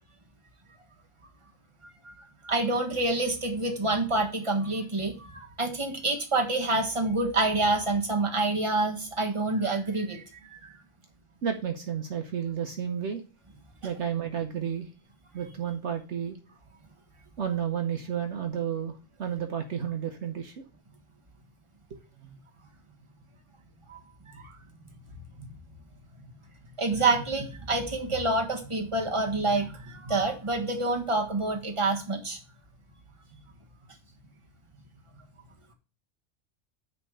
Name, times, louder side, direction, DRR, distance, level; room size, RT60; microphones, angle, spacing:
voice 1, 2.4-10.2 10.5-10.7 23.9-24.5 25.4-25.5 26.8-32.4, right 2 dB, 25° right, 2 dB, 1.5 m, -27 dB
voice 2, 11.4-13.2 13.8-14.9 15.3-16.4 17.4-20.6 21.9-22.4, right 8 dB, 65° right, 5 dB, 1.2 m, -32 dB
9.4 x 3.4 x 6.5 m, 0.34 s
omnidirectional pair, 1.3 m